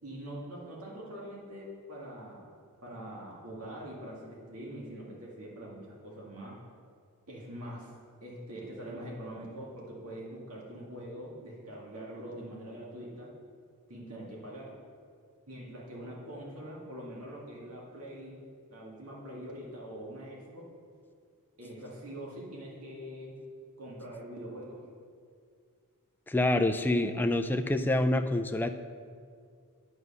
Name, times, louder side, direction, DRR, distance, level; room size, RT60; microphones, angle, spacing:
voice 1, 0.0-2.6 2.8-6.6 7.3-7.9 8.2-13.3 13.9-14.8 15.5-18.4 18.7-20.6 21.6-23.4 23.8-24.8, right 1 dB, 75° right, -3 dB, 2.0 m, -43 dB
voice 2, 26.3-28.7, left 1 dB, 10° left, 6 dB, 0.4 m, -27 dB
9.5 x 8.1 x 5.5 m, 2.1 s
head